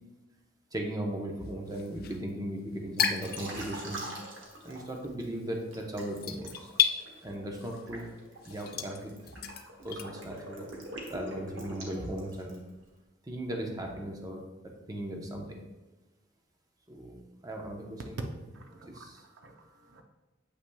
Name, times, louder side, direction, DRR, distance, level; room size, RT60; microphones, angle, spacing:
voice 1, 0.7-4.1 4.6-6.7 7.2-8.1 8.5-9.3 9.8-10.7 11.1-12.6 13.2-15.6 16.9-18.3 18.9-19.2, right 1 dB, 20° right, 1 dB, 0.9 m, -37 dB
sound 1, 1.4-4.1 4.4-10.1, left 9 dB, 55° left, 0.5 m, -33 dB
Liquid, 3.2-5.2 5.7-12.7, right 1 dB, 85° right, 1.6 m, -44 dB
voice 2, 18.5-20.0, right 2 dB, 65° right, 3 dB, 0.6 m, -53 dB
8.2 x 5.9 x 2.3 m, 1.2 s
head